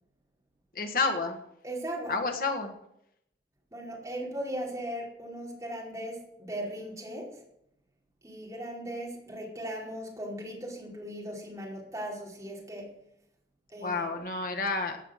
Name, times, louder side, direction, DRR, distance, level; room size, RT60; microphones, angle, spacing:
voice 1, 0.7-1.4 2.1-2.7 13.8-15.1, left 4 dB, 50° left, 4 dB, 1.6 m, -30 dB
voice 2, 1.6-2.2 3.7-7.4 8.2-12.9 13.7-14.0, right 1 dB, 20° right, -3 dB, 4.8 m, -38 dB
16.5 x 9.0 x 6.7 m, 0.79 s
head